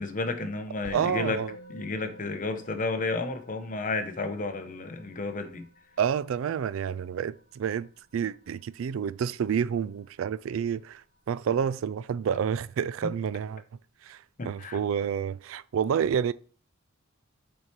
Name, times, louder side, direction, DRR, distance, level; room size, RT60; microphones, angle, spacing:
voice 1, 0.0-1.4 1.7-5.7 14.4-14.8, left 3 dB, 40° left, 0.8 m, -32 dB
Musical instrument, 0.8-10.4, left 2 dB, 80° left, 1.2 m, -51 dB
voice 2, 0.9-1.6 6.0-13.6 14.0-16.3, right 8 dB, 75° right, 0.3 m, -29 dB
6.5 x 4.5 x 4.5 m
head